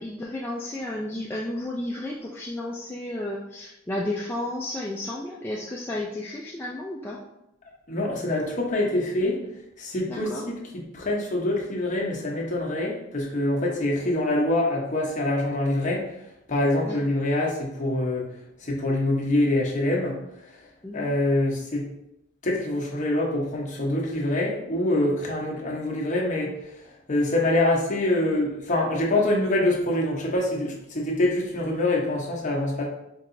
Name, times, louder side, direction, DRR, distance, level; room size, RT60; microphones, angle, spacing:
voice 1, 0.0-7.2 10.1-10.5 16.8-17.0 20.8-21.1, left 1 dB, 10° left, -4 dB, 0.3 m, -32 dB
voice 2, 7.9-9.4 9.8-10.6 10.9-16.1 16.5-18.3 18.6-20.2 20.5-20.6 20.9-21.8 22.4-26.5 27.1-32.8, left 1 dB, 40° left, -2 dB, 0.8 m, -25 dB
4.5 x 2.8 x 2.6 m, 0.84 s
head